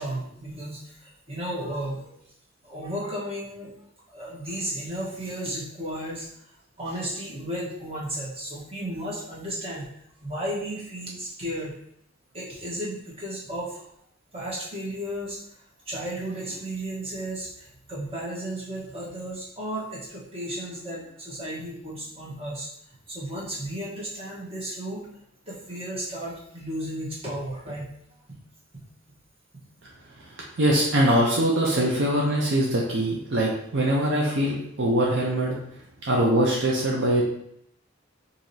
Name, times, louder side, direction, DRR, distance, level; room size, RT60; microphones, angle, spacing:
voice 1, 0.0-2.2 2.6-3.7 4.1-6.3 6.8-9.9 10.2-11.7 12.3-13.9 14.3-15.4 15.9-22.7 23.1-25.1 25.5-27.9, right 1 dB, 30° right, -6 dB, 1.2 m, -34 dB
voice 2, 30.6-35.6 36.0-37.2, right 1 dB, 60° right, -3 dB, 0.7 m, -22 dB
4.7 x 2.8 x 2.7 m, 0.71 s
head